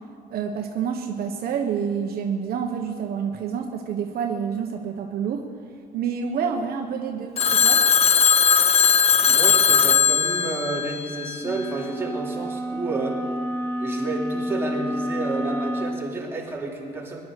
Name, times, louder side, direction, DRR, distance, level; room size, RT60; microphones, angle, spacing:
voice 1, 0.3-5.4 5.9-7.8, right 7 dB, 65° right, 3 dB, 1.2 m, -28 dB
Telephone, 7.4-11.6, left 7 dB, 35° left, 0.7 m, -19 dB
voice 2, 9.2-13.2 13.8-17.2, right 3 dB, 15° right, -3 dB, 3.2 m, -30 dB
sound 1, 11.4-16.0, equal, 10° left, 1.3 m, -29 dB
19.0 x 11.5 x 6.6 m, 2.5 s
cardioid pair, 110°, 17 cm